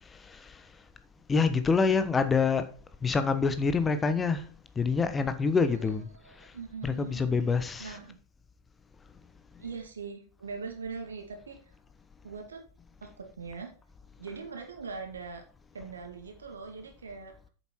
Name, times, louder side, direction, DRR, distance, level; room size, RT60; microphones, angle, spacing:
voice 1, 0.1-0.7 1.3-2.7 3.0-4.5 4.8-6.1 6.4-6.5 6.8-8.0, left 5 dB, 15° left, 1.0 m, -26 dB
voice 2, 5.5-7.4 7.8-8.2 9.6-11.7 12.2-12.6 13.0-13.7 14.2-15.4 15.7-17.4, right 5 dB, 70° right, 2.3 m, -42 dB
8.7 x 7.1 x 4.5 m
figure-of-eight pair, 90°, 0 cm